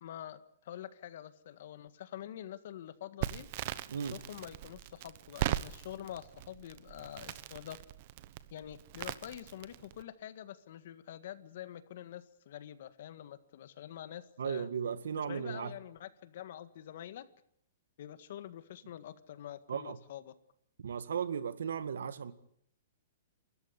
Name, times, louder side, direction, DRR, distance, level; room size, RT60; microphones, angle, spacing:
voice 1, 0.0-3.5 4.1-7.8 8.5-14.7 15.2-17.3 18.0-20.3, left 11 dB, 55° left, 1.8 m, -46 dB
Crackle, 3.2-10.0, right 13 dB, 40° right, 1.1 m, -40 dB
voice 2, 14.4-15.7 19.7-20.0 20.8-22.3, right 7 dB, 90° right, 1.9 m, -36 dB
29.0 x 14.0 x 9.8 m
hypercardioid pair, 165°, 0 cm